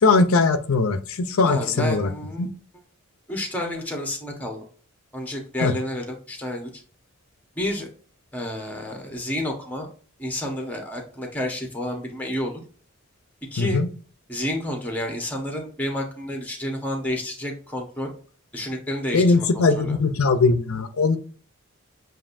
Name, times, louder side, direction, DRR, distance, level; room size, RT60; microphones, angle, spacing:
voice 1, 0.0-2.1 2.4-2.5 5.6-5.7 13.6-13.9 19.1-21.2, left 3 dB, 90° left, 0.6 m, -20 dB
voice 2, 1.4-2.5 3.3-4.6 5.1-6.7 7.5-7.9 8.3-9.9 10.2-12.6 13.5-13.8 14.3-18.1 18.5-20.0, left 1 dB, 10° left, 1.1 m, -30 dB
7.3 x 2.6 x 2.6 m
head